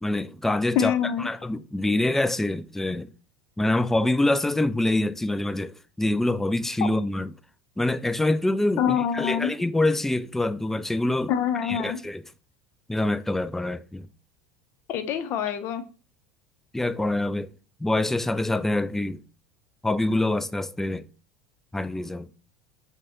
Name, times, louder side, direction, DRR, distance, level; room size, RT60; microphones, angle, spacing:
voice 1, 0.0-3.1 3.6-7.3 7.8-11.3 11.6-12.2 12.9-14.1 16.7-17.5 17.8-19.2 19.8-21.0 21.7-22.3, left 2 dB, 5° left, 0.3 m, -25 dB
voice 2, 0.8-1.3 8.8-9.5 11.3-12.0 14.9-15.8, left 9 dB, 50° left, 0.6 m, -25 dB
6.1 x 2.2 x 2.9 m
hypercardioid pair, 75°, 5 cm